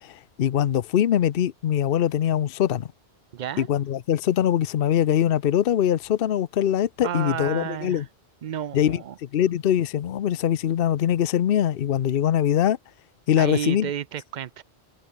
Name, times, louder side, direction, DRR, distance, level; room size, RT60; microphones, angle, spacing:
voice 1, 0.0-2.9 3.6-8.0 8.7-9.0 9.3-12.8 13.3-13.9, left 10 dB, 65° left, 0.8 m, -22 dB
voice 2, 3.3-3.7 7.0-8.0 8.4-9.2 13.4-14.6, right 10 dB, 55° right, 0.6 m, -31 dB
omnidirectional pair, 1.1 m